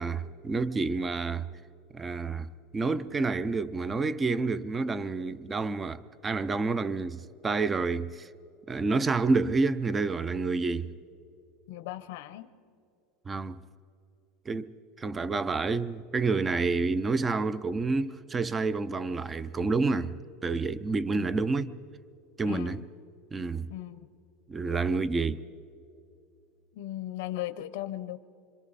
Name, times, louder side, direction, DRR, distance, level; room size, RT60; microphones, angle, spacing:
voice 1, 0.0-1.5 1.9-2.5 2.7-8.3 8.7-10.9 13.3-13.6 14.5-14.7 15.0-20.1 20.4-21.7 22.4-22.8 23.3-23.7 24.5-25.4, right 3 dB, 15° right, 0.5 m, -29 dB
voice 2, 11.7-12.5 21.1-21.3 22.5-22.9 23.7-24.1 26.7-28.2, left 14 dB, 75° left, 0.8 m, -37 dB
26.5 x 25.5 x 4.1 m
supercardioid pair, 145°, 0 cm